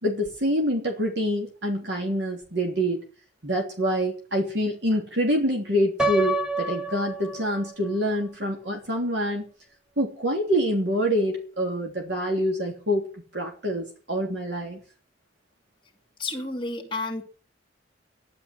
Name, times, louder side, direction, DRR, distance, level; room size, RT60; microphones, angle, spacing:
voice 1, 0.0-3.0 3.4-9.5 10.0-14.8, equal, 65° right, 1 dB, 3.1 m, -26 dB
Piano, 6.0-8.0, right 1 dB, 5° right, 1.1 m, -28 dB
voice 2, 16.2-17.2, left 2 dB, 25° left, 1 dB, 2.2 m, -31 dB
14.0 x 11.0 x 7.6 m, 0.40 s
head